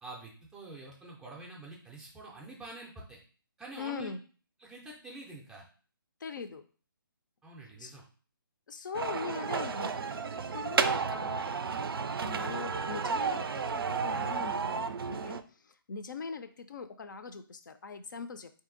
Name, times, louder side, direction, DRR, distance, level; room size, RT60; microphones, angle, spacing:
voice 1, 0.0-3.2 3.6-4.1 4.6-5.7 7.4-8.0, right 2 dB, 5° right, -3 dB, 0.4 m, -47 dB
voice 2, 3.8-4.2 6.2-6.6 7.8-7.9 8.7-10.2 10.5-11.5 12.2-18.5, left 5 dB, 55° left, 9 dB, 0.5 m, -41 dB
sound 1, 8.9-15.4, right 5 dB, 80° right, 0.4 m, -32 dB
4.0 x 2.7 x 3.7 m, 0.40 s
hypercardioid pair, 160°, 12 cm